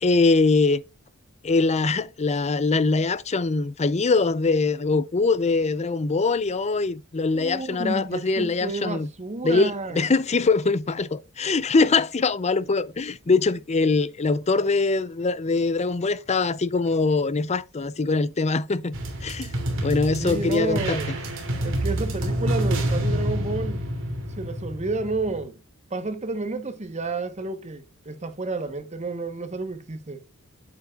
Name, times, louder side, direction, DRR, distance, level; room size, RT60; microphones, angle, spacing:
voice 1, 0.0-0.8 1.4-9.1 9.4-19.5 19.8-21.0, left 3 dB, 30° left, 0.5 m, -23 dB
voice 2, 7.3-10.0 20.2-21.1 21.6-23.9 24.4-25.6 25.9-30.2, right 3 dB, 30° right, 1.1 m, -30 dB
sound 1, 18.9-25.5, right 1 dB, 65° right, 2.8 m, -28 dB
9.2 x 7.6 x 2.4 m
head